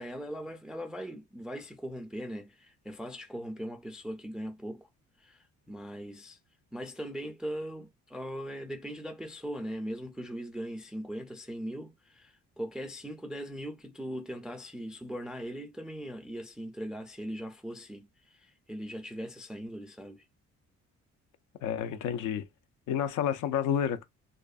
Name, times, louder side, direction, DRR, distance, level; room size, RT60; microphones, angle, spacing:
voice 1, 0.0-4.9 5.2-6.4 6.7-20.3, equal, ahead, 0.3 m, -40 dB
voice 2, 21.6-22.5 22.9-24.0, left 9 dB, 80° left, 0.5 m, -30 dB
2.6 x 2.4 x 2.3 m
cardioid pair, 90°, 30 cm